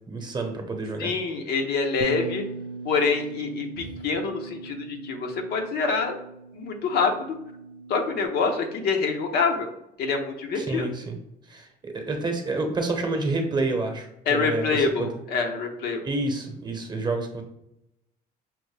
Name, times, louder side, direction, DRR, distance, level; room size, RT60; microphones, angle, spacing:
voice 1, 0.1-1.1 3.8-4.0 10.6-11.2 11.5-15.1 16.0-17.4, right 3 dB, 25° right, 4 dB, 0.8 m, -29 dB
voice 2, 1.0-2.5 2.8-6.2 6.5-7.1 7.9-9.7 10.0-10.9 14.3-16.0, left 4 dB, 70° left, 4 dB, 0.8 m, -26 dB
Bass guitar, 2.0-8.3, right 5 dB, 65° right, 0.4 m, -40 dB
5.9 x 2.1 x 3.2 m, 0.84 s
cardioid pair, 110°, 17 cm